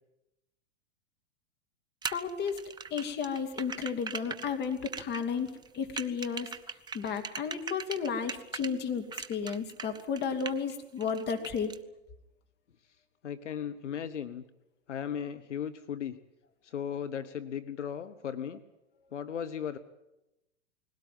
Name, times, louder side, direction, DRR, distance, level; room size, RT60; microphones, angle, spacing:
sound 1, 2.0-8.7 9.1-10.7 11.0-11.8, right 5 dB, 10° right, 0.7 m, -40 dB
voice 1, 2.1-2.6 2.9-6.5 6.9-11.7, left 6 dB, 30° left, 5 dB, 2.7 m, -33 dB
voice 2, 13.2-14.4 14.9-16.2 16.6-18.6 19.1-19.8, left 8 dB, 80° left, 12 dB, 1.1 m, -36 dB
20.0 x 17.0 x 9.3 m, 0.92 s
hypercardioid pair, 105°, 35 cm